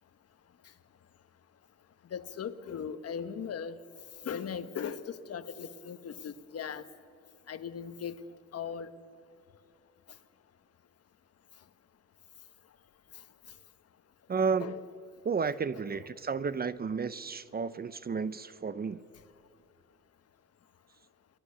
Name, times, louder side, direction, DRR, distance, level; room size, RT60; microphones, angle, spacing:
voice 1, 2.1-3.7 4.2-6.8 7.5-8.2 8.5-8.9 14.6-14.8 15.7-15.8, left 7 dB, 55° left, 11 dB, 1.3 m, -38 dB
voice 2, 14.3-14.8 15.2-19.0, right 5 dB, 30° right, 16 dB, 0.7 m, -32 dB
28.5 x 20.0 x 7.0 m, 2.3 s
cardioid pair, 90°, 30 cm